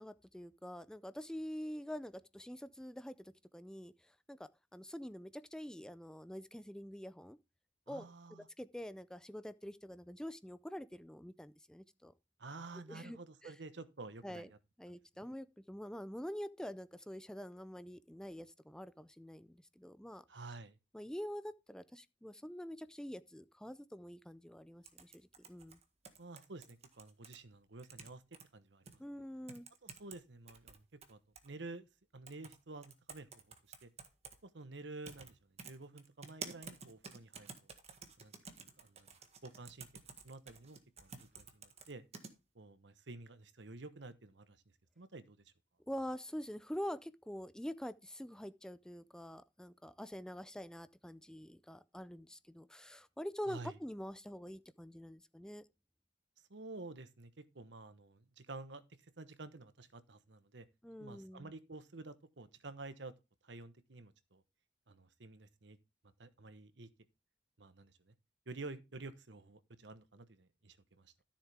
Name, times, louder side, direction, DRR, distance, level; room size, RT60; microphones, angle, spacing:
voice 1, 0.0-7.4 7.9-8.1 8.6-12.1 12.9-13.5 14.2-14.5 14.8-20.2 20.9-25.8 29.0-29.7 45.9-55.7 60.8-61.5, equal, 5° left, 0.4 m, -46 dB
voice 2, 7.9-8.5 12.4-14.6 15.2-15.3 20.3-20.8 26.2-28.2 28.5-29.0 29.8-33.5 33.8-33.9 34.4-37.5 38.2-38.3 38.6-39.1 39.4-39.9 40.2-42.0 42.5-44.6 45.0-45.5 53.5-53.8 56.5-58.8 59.2-60.7 61.0-63.1 63.4-64.4 64.9-65.8 66.2-66.9 67.6-68.1 68.5-71.1, right 3 dB, 75° right, 1.1 m, -50 dB
sound 1, 24.8-27.4 27.8-28.4 28.9-29.0 29.5-30.2 30.5-31.5 32.3-32.6 32.8-34.4 35.0-35.3 35.6-42.3, right 5 dB, 35° right, 1.6 m, -51 dB
13.0 x 7.3 x 3.5 m
head